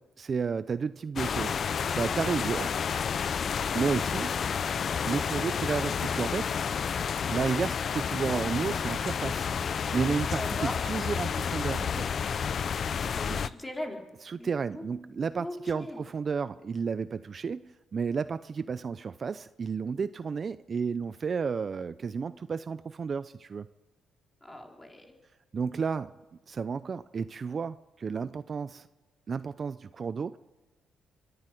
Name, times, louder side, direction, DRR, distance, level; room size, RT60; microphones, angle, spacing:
voice 1, 0.2-2.7 3.7-4.4 5.0-6.6 7.3-12.1 12.8-13.0 13.3-13.4 14.2-23.7 25.5-26.1 26.5-28.9 29.3-30.4, right 5 dB, 40° right, 14 dB, 0.6 m, -32 dB
sound 1, 1.2-13.5, left 7 dB, 50° left, 0.6 m, -30 dB
voice 2, 10.3-10.8 13.1-14.0 14.4-14.5 14.7-14.8 15.4-16.0 24.4-25.2, left 1 dB, 15° left, 2 dB, 4.2 m, -39 dB
23.5 x 12.0 x 9.3 m, 1.2 s
cardioid pair, 90°, 0 cm